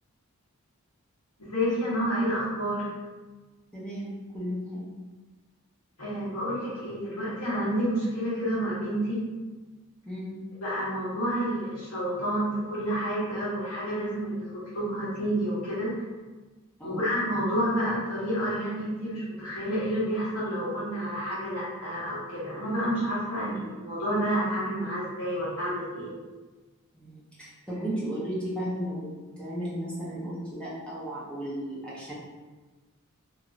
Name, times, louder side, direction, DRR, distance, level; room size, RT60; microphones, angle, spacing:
voice 1, 1.5-2.9 6.0-9.2 10.6-15.9 16.8-26.2, equal, 80° left, -9 dB, 1.3 m, -29 dB
voice 2, 3.7-4.9 10.1-10.4 16.8-17.1 26.9-29.0 29.4-32.1, equal, 5° left, -8 dB, 0.6 m, -34 dB
2.9 x 2.8 x 2.4 m, 1.3 s
head